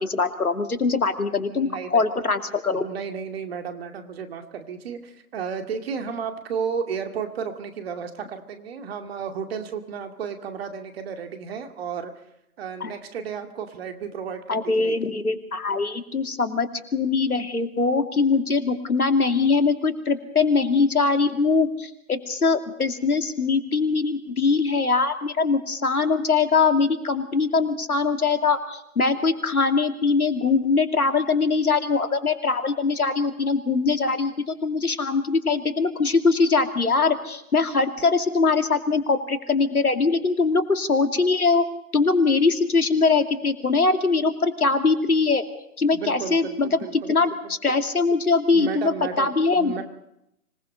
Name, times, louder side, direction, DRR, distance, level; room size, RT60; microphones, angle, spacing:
voice 1, 0.0-2.8 12.8-12.9 14.5-41.6 41.9-45.4 45.8-46.7 47.1-49.7, left 4 dB, 85° left, 7 dB, 2.7 m, -22 dB
voice 2, 1.5-2.0 2.7-12.1 12.6-15.0 45.9-47.3 48.5-49.8, right 6 dB, 45° right, 6 dB, 2.4 m, -33 dB
25.5 x 19.0 x 5.4 m, 0.81 s
figure-of-eight pair, 140°, 43 cm